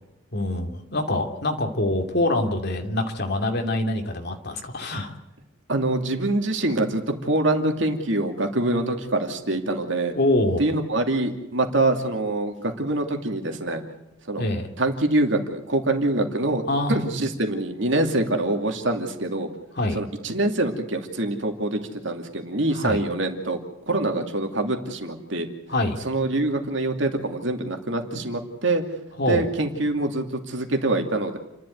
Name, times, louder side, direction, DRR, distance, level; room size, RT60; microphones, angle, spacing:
voice 1, 0.3-5.1 10.1-10.6 14.4-14.7 16.7-17.0 19.7-20.0 22.7-23.0 25.7-26.0 29.2-29.5, left 1 dB, 55° left, 4 dB, 2.8 m, -25 dB
voice 2, 5.7-10.2 10.6-13.8 14.3-14.5 14.8-16.6 16.9-19.5 19.9-23.6 23.9-25.5 26.0-28.8 29.3-31.4, right 2 dB, 65° right, 4 dB, 2.6 m, -25 dB
29.5 x 12.0 x 9.4 m, 0.94 s
head